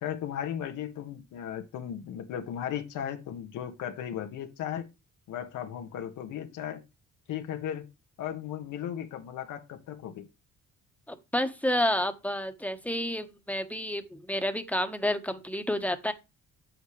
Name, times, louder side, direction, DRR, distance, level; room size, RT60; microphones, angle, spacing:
voice 1, 0.0-4.9 5.3-6.8 7.3-7.9 8.2-10.3, left 10 dB, 85° left, 1.5 m, -36 dB
voice 2, 11.1-16.1, left 1 dB, 5° left, 1.3 m, -30 dB
8.5 x 7.8 x 3.2 m
cardioid pair, 90°, 30 cm